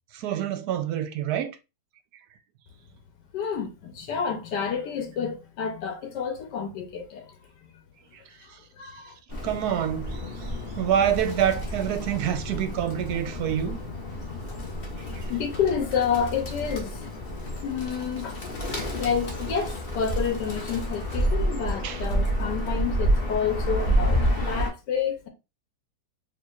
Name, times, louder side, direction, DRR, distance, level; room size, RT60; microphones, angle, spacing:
voice 1, 0.1-1.6 9.4-10.2 10.8-13.8 15.1-15.3 21.8-22.0, right 10 dB, 75° right, 1.1 m, -26 dB
voice 2, 3.3-7.3 8.4-9.1 15.3-17.0 17.6-18.4 19.0-25.3, left 7 dB, 85° left, 1.4 m, -29 dB
Bird, 9.3-24.7, equal, 40° left, 1.1 m, -29 dB
4.4 x 3.4 x 2.4 m
omnidirectional pair, 1.8 m